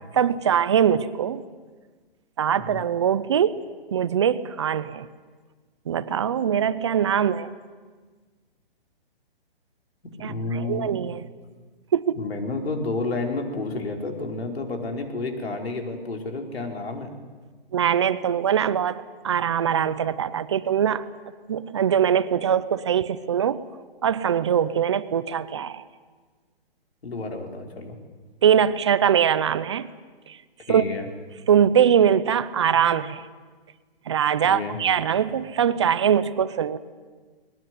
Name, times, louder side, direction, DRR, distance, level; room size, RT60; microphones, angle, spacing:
voice 1, 0.1-1.4 2.4-3.6 3.9-5.1 5.9-7.5 10.2-11.3 11.9-12.2 17.7-21.1 21.5-23.6 24.0-25.8 28.4-29.9 30.3-30.4 30.7-30.8 31.5-33.3 34.1-36.8, right 8 dB, 30° right, 15 dB, 0.6 m, -22 dB
voice 2, 10.0-10.9 12.1-17.1 27.0-28.0 30.7-31.1 34.4-34.8, left 3 dB, 90° left, 3 dB, 4.9 m, -30 dB
21.0 x 20.0 x 9.6 m, 1.4 s
hypercardioid pair, 165°, 30 cm